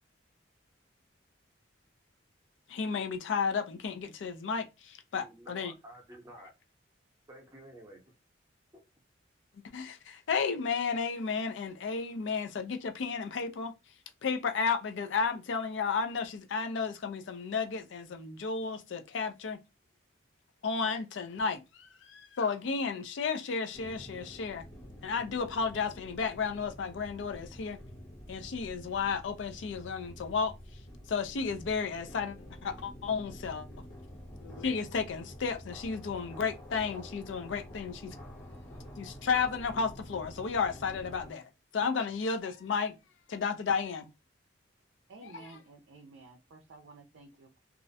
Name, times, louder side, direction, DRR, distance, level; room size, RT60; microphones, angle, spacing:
voice 1, 2.7-5.7 9.7-13.7 14.2-19.6 20.6-24.7 25.0-27.8 28.3-30.5 31.1-32.4 32.6-33.7 34.4-38.2 39.0-43.0 43.3-44.1 45.2-45.5, left 5 dB, 75° left, 0.4 m, -33 dB
voice 2, 5.1-6.5 7.3-8.0 8.7-8.8, right 1 dB, 15° right, 0.6 m, -51 dB
sound 1, 23.7-41.3, equal, 55° left, 1.0 m, -48 dB
voice 3, 45.1-47.6, right 3 dB, 80° right, 0.4 m, -53 dB
2.4 x 2.0 x 2.6 m
head